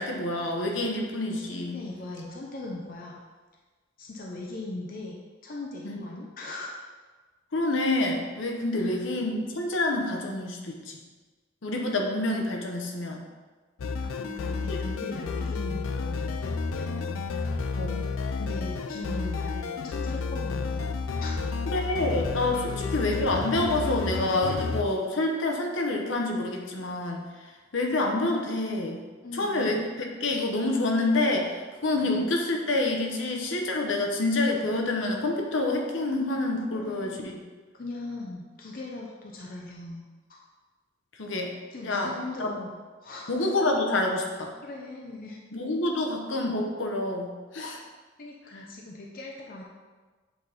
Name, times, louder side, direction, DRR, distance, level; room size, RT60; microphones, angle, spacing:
voice 1, 0.0-1.8 5.8-6.0 7.5-11.0 11.6-13.2 14.7-14.8 17.8-18.1 21.7-27.2 27.7-29.0 29.3-29.8 30.2-37.4 41.2-41.5 41.8-42.5 43.3-44.5 45.5-47.8 48.5-48.6, left 2 dB, 70° left, 1 dB, 0.9 m, -27 dB
voice 2, 1.7-3.2 4.0-6.7 8.8-9.0 14.0-17.3 18.4-20.9 21.2-21.4 22.7-22.9 29.2-29.8 32.0-32.3 36.7-37.4 37.7-40.0 40.3-40.4 41.7-42.8 43.0-43.4 44.6-45.4 48.2-49.6, left 2 dB, 45° left, -1 dB, 0.7 m, -39 dB
sound 1, 13.8-24.8, left 4 dB, 90° left, 0.4 m, -31 dB
7.9 x 4.1 x 3.4 m, 1.3 s
head